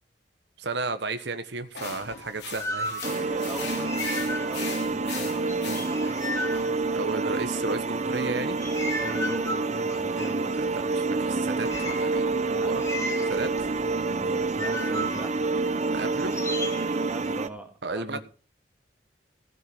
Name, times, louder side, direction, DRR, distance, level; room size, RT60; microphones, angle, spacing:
voice 1, 0.6-3.3 6.9-8.6 10.6-12.3 12.5-12.8 13.3-13.7 15.9-16.4 17.8-18.2, right 3 dB, 75° right, 1.2 m, -33 dB
sound 1, 1.7-6.3, left 6 dB, 70° left, 3.9 m, -39 dB
sound 2, 1.8-4.9 5.2-7.5 8.1-17.3, left 1 dB, 15° left, 2.3 m, -36 dB
sound 3, 3.0-17.5, right 3 dB, 40° right, 0.7 m, -28 dB
voice 2, 3.1-4.1 4.5-6.1 9.0-10.7 12.5-12.8 14.1-15.4 17.1-18.2, equal, 10° right, 1.9 m, -39 dB
15.5 x 6.8 x 6.0 m
head